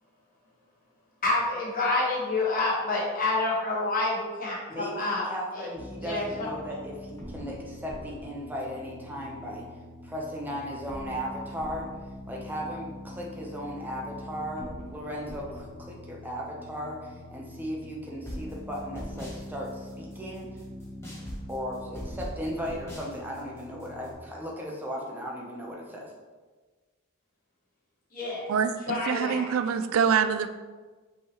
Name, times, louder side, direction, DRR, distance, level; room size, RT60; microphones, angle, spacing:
voice 1, 1.2-5.3 5.5-5.7 5.9-6.5 28.1-28.4 28.8-29.5, left 2 dB, 40° left, -5 dB, 1.0 m, -28 dB
voice 2, 4.7-9.7 10.0-11.9 12.3-20.5 21.5-26.1, equal, 10° right, -2 dB, 0.6 m, -36 dB
sound 1, 5.7-24.1, left 1 dB, 15° left, 1.0 m, -42 dB
voice 3, 28.5-30.5, right 6 dB, 70° right, 9 dB, 0.3 m, -25 dB
5.4 x 3.2 x 2.9 m, 1.4 s
head